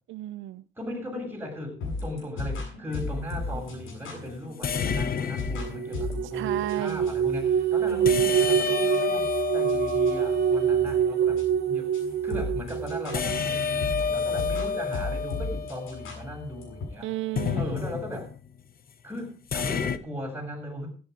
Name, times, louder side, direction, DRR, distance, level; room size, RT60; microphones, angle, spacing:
voice 1, 0.1-0.6 6.3-7.1 7.9-8.4 17.0-17.8, right 15 dB, 80° right, 0.5 m, -34 dB
voice 2, 0.8-12.0 12.2-17.1 17.6-18.3 19.0-20.9, left 1 dB, 10° right, 7.2 m, -38 dB
sound 1, 1.8-16.9, left 3 dB, 85° left, 7.7 m, -37 dB
sound 2, 2.9-3.2 4.6-6.1 8.1-11.1 13.1-16.5 17.4-18.4 19.5-20.0, left 6 dB, 50° left, 1.0 m, -30 dB
sound 3, 5.6-13.4, right 8 dB, 55° right, 1.1 m, -25 dB
13.5 x 10.5 x 5.2 m
cardioid pair, 90°, 20 cm